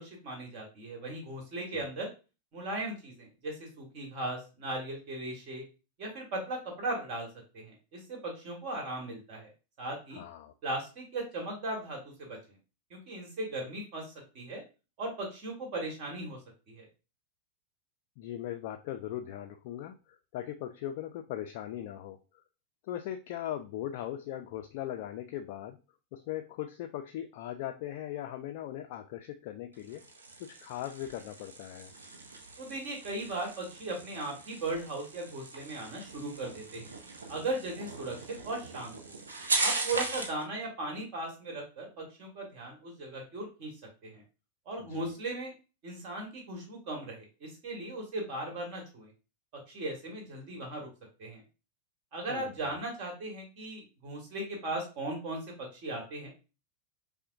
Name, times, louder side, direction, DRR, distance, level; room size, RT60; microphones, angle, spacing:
voice 1, 0.0-2.1 2.5-5.6 6.0-7.3 7.5-9.5 9.8-10.2 10.6-12.6 12.9-14.0 14.3-14.6 15.0-16.4 16.7-16.9 32.6-36.9 37.3-39.1 39.6-43.7 44.0-44.2 44.6-45.5 45.8-49.1 49.7-50.9 51.2-51.4 52.1-56.3, right 2 dB, 45° right, 1 dB, 1.5 m, -37 dB
voice 2, 10.1-10.5 18.2-22.2 22.8-25.8 26.1-30.1 30.4-31.9 39.9-40.2 44.9-45.0 52.3-52.8, left 12 dB, 50° left, 6 dB, 0.3 m, -39 dB
sound 1, 29.7-40.4, right 3 dB, 70° right, 0.6 m, -38 dB
5.5 x 2.1 x 2.5 m, 0.32 s
figure-of-eight pair, 90°, 0 cm